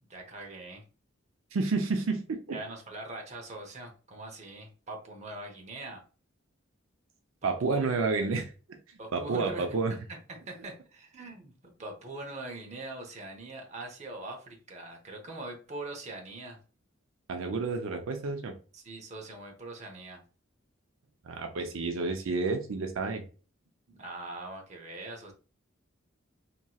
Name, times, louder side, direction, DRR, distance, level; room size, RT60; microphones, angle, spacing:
voice 1, 0.0-0.8 2.5-6.0 7.4-8.3 9.0-9.7 10.1-16.6 18.7-20.2 23.9-25.3, right 2 dB, 35° right, 1 dB, 0.8 m, -42 dB
voice 2, 1.5-2.6 7.4-8.4 9.1-10.0 17.3-18.5 21.2-23.2, right 4 dB, 85° right, 5 dB, 0.5 m, -30 dB
2.9 x 2.8 x 2.3 m, 0.36 s
head